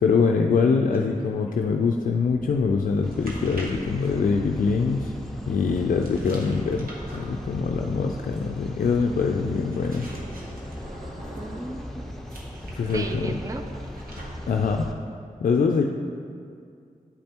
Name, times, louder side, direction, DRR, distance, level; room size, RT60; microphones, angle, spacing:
voice 1, 0.0-5.1 5.5-10.1 12.7-13.3 14.5-14.9 15.4-15.8, left 5 dB, 65° left, 2 dB, 0.4 m, -23 dB
sound 1, 0.9-5.0 6.0-11.6 12.3-14.6, right 1 dB, 80° right, 1.1 m, -45 dB
sound 2, 3.0-14.9, left 1 dB, ahead, 0.8 m, -38 dB
sound 3, 6.5-7.6 10.1-11.9, equal, 55° right, 1.5 m, -44 dB
voice 2, 11.4-12.2 12.8-13.7, right 2 dB, 20° right, 5 dB, 0.5 m, -35 dB
9.7 x 5.3 x 2.9 m, 2.3 s
cardioid pair, 60°, 15 cm